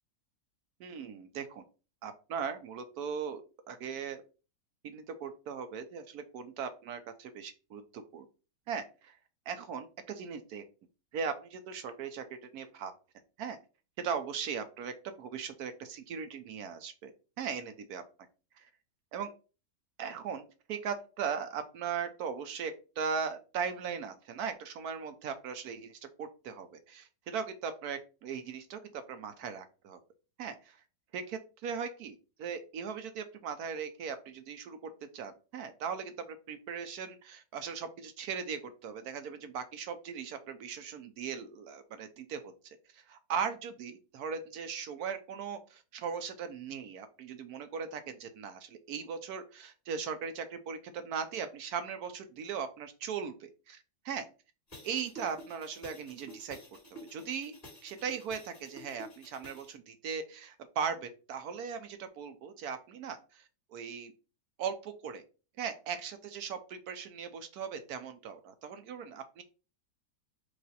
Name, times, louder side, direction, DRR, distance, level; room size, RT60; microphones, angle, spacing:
voice 1, 0.8-1.6 2.0-3.4 3.7-4.2 4.8-8.3 8.7-9.2 9.5-10.6 11.1-12.9 13.4-13.6 14.0-17.1 17.4-18.0 18.6-18.7 19.1-19.3 20.0-20.4 20.7-30.0 30.4-30.8 31.1-54.3 54.8-56.6 57.0-57.5 57.8-63.4 63.7-64.1 64.6-65.2 65.6-69.4, right 6 dB, 70° right, 9 dB, 1.0 m, -39 dB
sound 1, 54.7-59.7, equal, 20° left, 2.2 m, -51 dB
4.9 x 2.6 x 3.9 m, 0.34 s
omnidirectional pair, 1.8 m